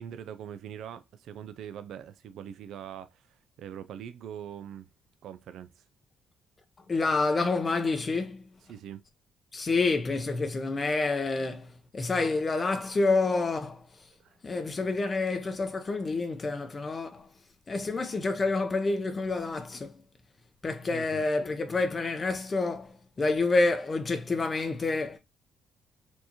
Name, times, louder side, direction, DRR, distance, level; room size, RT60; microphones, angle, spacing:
voice 1, 0.0-4.9 5.2-5.8 8.7-9.0 14.2-14.4 20.9-21.2, right 9 dB, 75° right, 0.4 m, -42 dB
voice 2, 6.9-8.5 9.5-13.9 14.4-17.3 17.7-20.0 20.6-25.2, left 3 dB, 35° left, 0.6 m, -28 dB
4.4 x 2.7 x 2.8 m
cardioid pair, 85°, 0 cm